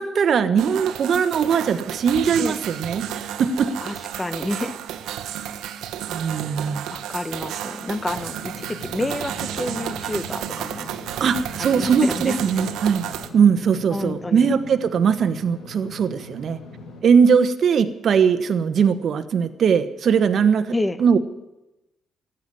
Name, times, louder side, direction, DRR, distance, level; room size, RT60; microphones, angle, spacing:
voice 1, 0.0-3.7 6.1-6.8 11.2-13.1 13.3-16.6 17.0-20.7 21.0-21.2, right 6 dB, 60° right, 9 dB, 1.2 m, -20 dB
sound 1, 0.6-13.3, right 10 dB, 90° right, 1.0 m, -32 dB
voice 2, 3.8-4.8 6.9-10.9 11.6-12.4 13.9-14.6 20.7-21.0, left 2 dB, 15° left, 13 dB, 1.0 m, -29 dB
Engine / Mechanisms, 8.1-17.0, left 2 dB, 85° left, 3.8 m, -41 dB
14.0 x 9.2 x 9.8 m, 0.94 s
cardioid pair, 90°, 0 cm